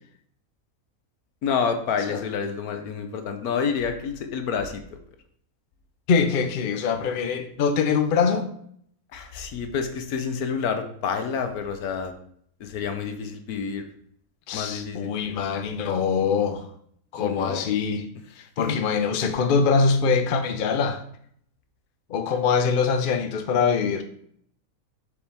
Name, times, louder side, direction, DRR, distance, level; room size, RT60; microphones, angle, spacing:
voice 1, 1.4-5.0 9.1-12.1 12.6-13.8 14.5-15.4 17.2-17.6 18.6-18.8, left 6 dB, 80° left, 1.3 m, -29 dB
voice 2, 6.1-8.5 14.5-16.6 17.1-18.0 18.4-21.0 22.1-24.0, left 5 dB, 50° left, 0.6 m, -23 dB
7.1 x 5.2 x 3.4 m
omnidirectional pair, 1.6 m